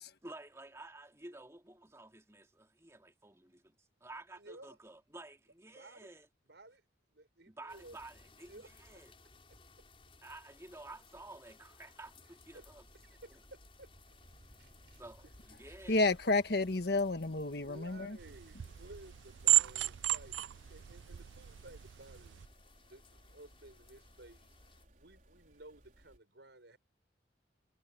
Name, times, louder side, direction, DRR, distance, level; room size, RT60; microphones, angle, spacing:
voice 1, 0.2-6.3 7.5-9.1 10.2-13.4 15.0-16.1, right 2 dB, 15° right, 2.5 m, -52 dB
voice 2, 4.3-4.8 5.7-6.1 6.4-6.8 7.1-8.0 8.5-9.0 9.5-9.6 12.5-12.7 13.0-13.9 14.6-15.3 17.6-22.4 22.9-24.6 24.9-26.8, right 2 dB, 70° right, 6.5 m, -56 dB
sound 1, 7.7-24.9, left 3 dB, 30° left, 6.1 m, -62 dB
sound 2, 12.5-26.2, equal, 45° right, 4.6 m, -63 dB
voice 3, 15.9-18.2, left 2 dB, 60° left, 1.4 m, -31 dB
sound 3, 18.2-22.5, right 15 dB, 85° right, 0.4 m, -34 dB
head